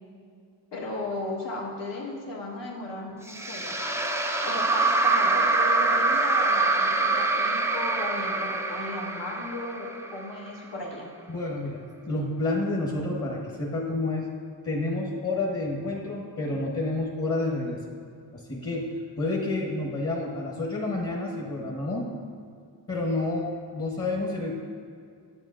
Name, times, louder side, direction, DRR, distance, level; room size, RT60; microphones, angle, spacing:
voice 1, 0.7-3.8 4.4-11.1, left 2 dB, 75° left, -2 dB, 1.4 m, -36 dB
sound 1, 3.3-10.6, right 3 dB, 5° right, 0.4 m, -25 dB
voice 2, 11.3-14.3 14.6-17.8 18.3-22.1 22.9-24.5, left 2 dB, 30° left, -2 dB, 1.1 m, -29 dB
11.0 x 7.6 x 2.5 m, 2.3 s
cardioid pair, 95°, 43 cm